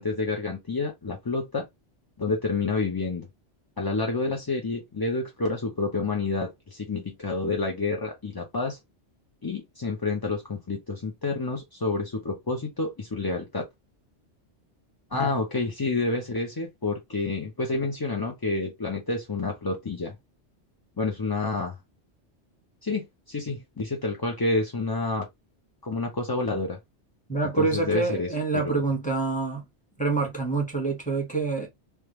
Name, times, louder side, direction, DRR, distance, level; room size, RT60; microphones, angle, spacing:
voice 1, 0.0-1.6 2.2-3.3 3.8-8.8 9.4-13.7 15.1-20.1 21.0-21.8 22.8-25.3 25.8-26.8 27.6-28.8, left 3 dB, 30° left, 0.4 m, -29 dB
voice 2, 27.3-29.7 30.0-31.7, right 3 dB, 5° left, 1.2 m, -26 dB
3.4 x 2.3 x 2.9 m
omnidirectional pair, 1.2 m